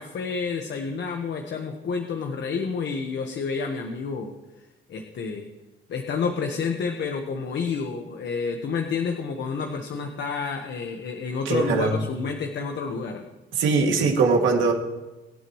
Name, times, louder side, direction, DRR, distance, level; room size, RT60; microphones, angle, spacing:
voice 1, 0.0-4.3 4.9-5.5 5.9-13.2, left 5 dB, 65° left, 4 dB, 1.3 m, -29 dB
voice 2, 11.5-12.0 13.6-14.7, right 4 dB, 80° right, 1 dB, 2.4 m, -21 dB
23.5 x 8.5 x 3.2 m, 1.1 s
cardioid pair, 90°, 20 cm